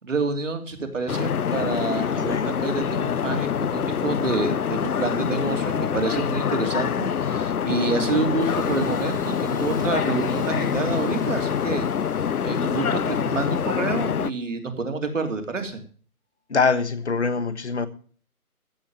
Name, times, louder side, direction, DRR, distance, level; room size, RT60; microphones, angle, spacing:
voice 1, 0.0-11.9 12.4-15.8, right 3 dB, 55° right, 3.0 m, -28 dB
sound 1, 1.1-14.3, left 8 dB, 80° left, 0.7 m, -25 dB
Engine starting / Sawing, 8.4-14.1, left 1 dB, 15° left, 1.3 m, -47 dB
voice 2, 16.5-17.9, left 4 dB, 50° left, 1.3 m, -24 dB
14.5 x 7.1 x 7.3 m
hypercardioid pair, 175°, 44 cm